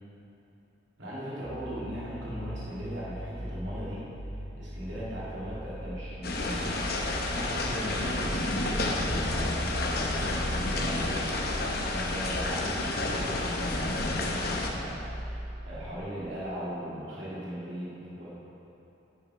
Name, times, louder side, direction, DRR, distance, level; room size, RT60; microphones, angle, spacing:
voice 1, 1.0-4.1 4.6-6.9 7.2-18.3, equal, 70° right, -8 dB, 2.3 m, -38 dB
sound 1, 1.4-15.9, equal, 20° left, 0.9 m, -40 dB
sound 2, 6.2-14.7, left 2 dB, 55° left, 0.9 m, -30 dB
10.5 x 8.9 x 3.5 m, 2.9 s
head